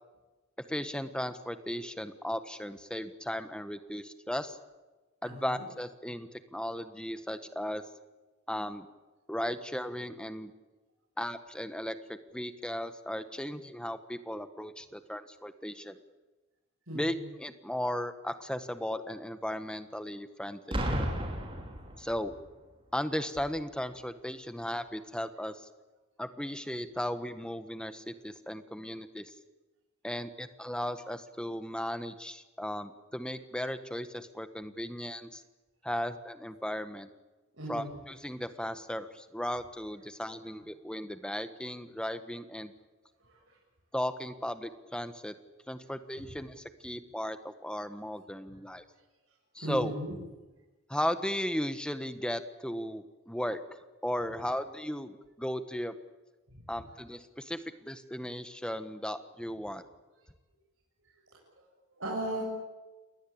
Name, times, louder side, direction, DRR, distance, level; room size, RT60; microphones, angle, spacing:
voice 1, 0.7-4.6 5.2-7.8 8.5-8.9 9.3-10.5 11.2-16.0 16.9-20.8 22.0-22.3 22.9-25.7 26.2-29.3 30.0-35.4 35.8-37.1 37.7-42.7 43.9-45.3 45.7-48.9 49.5-49.9 50.9-55.9 56.7-59.8, equal, 5° left, 10 dB, 1.4 m, -36 dB
voice 2, 5.2-5.6 16.9-17.2 37.5-37.9 40.2-40.3 43.2-43.6 46.2-46.3 48.5-48.6 49.6-50.1 56.5-56.6 62.0-62.4, right 1 dB, 65° right, -4 dB, 7.4 m, -37 dB
Boom, 20.7-22.5 23.3-23.6, equal, 25° right, 4.7 m, -33 dB
29.0 x 21.0 x 8.8 m, 1.2 s
head